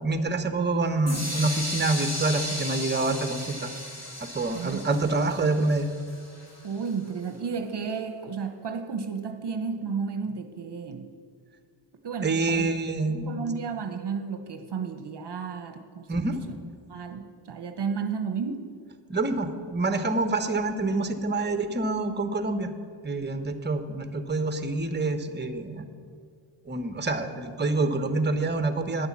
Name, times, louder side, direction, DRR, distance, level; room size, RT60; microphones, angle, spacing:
voice 1, 0.0-3.7 4.3-5.9 12.2-13.5 16.1-16.4 19.1-22.7 23.0-25.8 26.6-29.1, right 2 dB, 20° right, 9 dB, 1.0 m, -27 dB
sound 1, 1.1-6.9, left 1 dB, 30° left, 2.4 m, -35 dB
voice 2, 4.5-4.9 6.6-11.1 12.0-12.7 13.3-16.1 16.5-16.6 16.9-18.7, right 5 dB, 55° right, 7 dB, 0.9 m, -32 dB
9.8 x 8.8 x 7.3 m, 2.1 s
cardioid pair, 50°, 50 cm